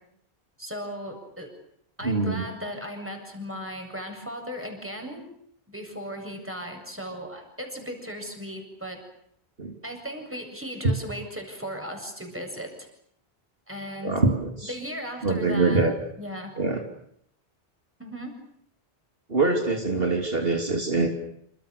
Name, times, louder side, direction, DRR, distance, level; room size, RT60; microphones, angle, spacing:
voice 1, 0.6-1.5 2.0-5.3 5.7-9.0 9.8-12.9 13.7-14.2 14.7-15.8 16.2-16.5 18.0-18.3, equal, 10° right, 3 dB, 7.8 m, -36 dB
voice 2, 2.0-2.4 9.6-9.7 14.0-14.7 15.2-15.9 16.6-16.8 19.3-21.1, right 3 dB, 65° right, 3 dB, 3.3 m, -24 dB
28.5 x 27.5 x 6.8 m, 0.71 s
omnidirectional pair, 1.1 m